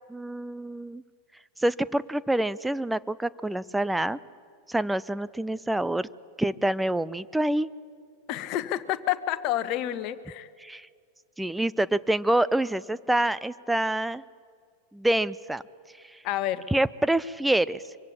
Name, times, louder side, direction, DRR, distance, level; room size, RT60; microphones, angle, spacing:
voice 1, 0.1-1.0 1.6-4.2 4.7-6.1 6.4-7.7 10.6-10.9 11.4-14.2 14.9-15.6 16.7-17.8, right 1 dB, 5° right, 16 dB, 0.6 m, -26 dB
voice 2, 8.3-10.5 16.2-16.7, left 13 dB, 40° left, 12 dB, 1.3 m, -29 dB
24.5 x 24.0 x 8.6 m, 2.1 s
figure-of-eight pair, 90°, 0 cm